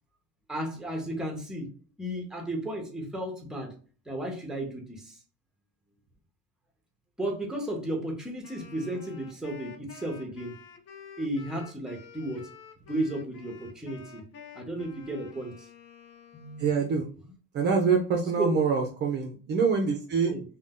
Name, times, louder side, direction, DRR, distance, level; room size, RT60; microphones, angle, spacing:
voice 1, 0.5-1.7 2.0-3.7 4.1-5.2 7.2-10.5 11.2-12.5 12.9-14.2 14.5-15.7 16.3-16.7 18.4-18.6 20.3-20.4, right 1 dB, ahead, 2 dB, 0.8 m, -34 dB
Wind instrument woodwind instrument, 8.4-16.8, left 6 dB, 45° left, 0.7 m, -49 dB
voice 2, 16.6-17.1 17.5-20.3, right 5 dB, 30° right, 2 dB, 0.5 m, -25 dB
2.6 x 2.2 x 3.6 m, 0.39 s
supercardioid pair, 115°, 33 cm